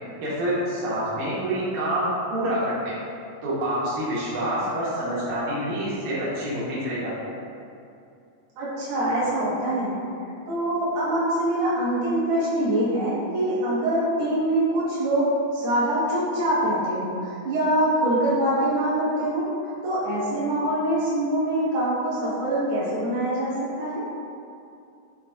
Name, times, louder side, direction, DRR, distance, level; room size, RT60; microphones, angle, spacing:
voice 1, 0.2-3.0 3.4-7.3, right 1 dB, 90° right, -8 dB, 2.4 m, -27 dB
voice 2, 8.6-10.0 10.4-19.5 19.8-24.0, right 1 dB, 55° right, -10 dB, 1.4 m, -24 dB
6.0 x 2.4 x 2.3 m, 2.6 s
omnidirectional pair, 3.5 m